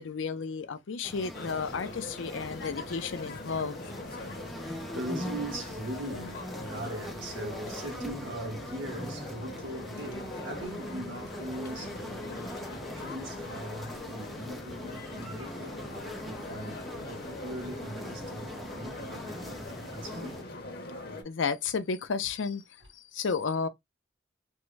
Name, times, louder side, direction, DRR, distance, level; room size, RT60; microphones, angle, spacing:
voice 1, 0.0-3.8 21.2-22.6 23.1-23.7, left 5 dB, 80° left, 0.5 m, -32 dB
sound 1, 1.0-20.4, left 1 dB, ahead, 0.4 m, -42 dB
sound 2, 1.3-21.2, left 2 dB, 50° left, 0.8 m, -42 dB
voice 2, 4.5-16.8 17.1-20.4, right 1 dB, 85° right, 1.3 m, -41 dB
3.5 x 2.1 x 3.1 m
head